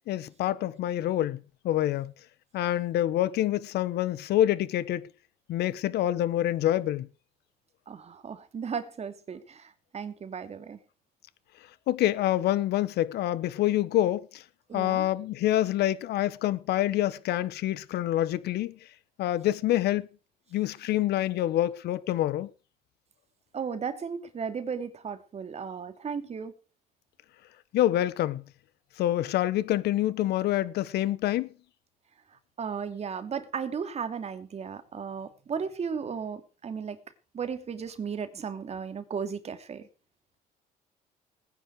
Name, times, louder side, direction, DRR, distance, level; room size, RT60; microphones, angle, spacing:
voice 1, 0.1-2.1 2.5-5.1 5.5-7.1 11.9-14.4 14.7-18.8 19.2-20.1 20.5-22.5 27.7-28.4 29.0-31.5, left 13 dB, 75° left, 1.3 m, -26 dB
voice 2, 7.9-10.8 14.7-15.1 23.5-26.5 32.6-37.0 37.3-39.9, right 6 dB, 40° right, 2.9 m, -35 dB
19.5 x 9.9 x 4.9 m
cardioid pair, 110°, 17 cm